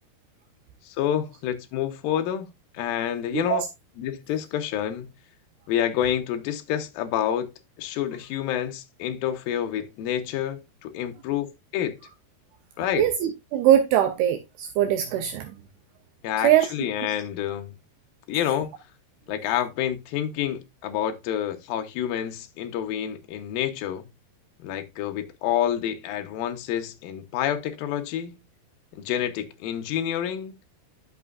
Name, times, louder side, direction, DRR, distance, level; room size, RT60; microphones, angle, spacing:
voice 1, 0.8-2.5 2.7-3.6 4.0-5.1 5.7-7.5 7.8-11.5 11.7-12.0 12.8-13.1 16.2-17.8 18.3-18.7 19.3-24.1 24.6-28.4 28.9-30.5, left 10 dB, 75° left, 2.4 m, -28 dB
voice 2, 3.3-3.7 13.0-15.5 16.4-16.7, right 11 dB, 80° right, 2.6 m, -21 dB
11.0 x 6.0 x 2.4 m
omnidirectional pair, 4.8 m